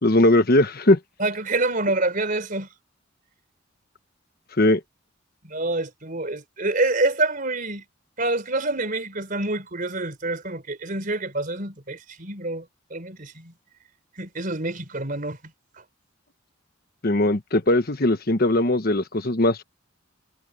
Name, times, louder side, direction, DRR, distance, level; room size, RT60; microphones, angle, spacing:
voice 1, 0.0-1.0 4.6-4.8 17.0-19.6, left 1 dB, 50° left, 1.2 m, -19 dB
voice 2, 1.2-2.7 5.4-7.8 8.2-12.7 12.9-13.5 14.2-15.4, right 2 dB, 45° right, 4.1 m, -27 dB
head